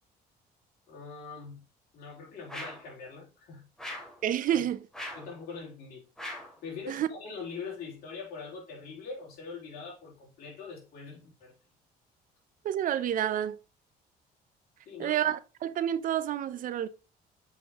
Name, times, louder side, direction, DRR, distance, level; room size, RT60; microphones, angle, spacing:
voice 1, 0.9-1.7 1.9-3.7 4.5-4.7 5.1-6.0 6.6-11.5 14.9-15.2, left 5 dB, 65° left, 3.5 m, -43 dB
sound 1, 2.5-2.9 3.8-4.2 4.9-5.3 6.2-6.6, left 1 dB, 5° left, 2.7 m, -40 dB
voice 2, 4.2-4.8 6.9-7.1 12.6-13.6 15.0-16.9, right 10 dB, 55° right, 0.6 m, -29 dB
7.1 x 5.5 x 3.0 m
cardioid pair, 110°, 17 cm